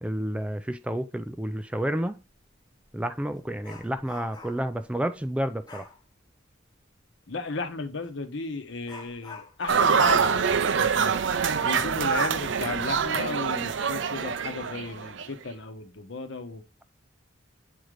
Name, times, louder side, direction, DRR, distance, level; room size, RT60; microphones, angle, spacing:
voice 1, 0.0-2.2 2.9-5.9, right 1 dB, 5° right, 0.3 m, -30 dB
Dog, 2.3-2.4 2.9-4.8 5.6-6.0 8.0-8.1 8.8-12.1 12.5-12.6 13.1-13.2 13.8-14.3 14.6-14.9, left 3 dB, 20° left, 0.9 m, -47 dB
voice 2, 7.3-11.1 11.6-16.6, left 3 dB, 70° left, 1.0 m, -34 dB
sound 1, 9.7-15.3, right 6 dB, 70° right, 0.5 m, -25 dB
7.9 x 3.8 x 3.1 m
head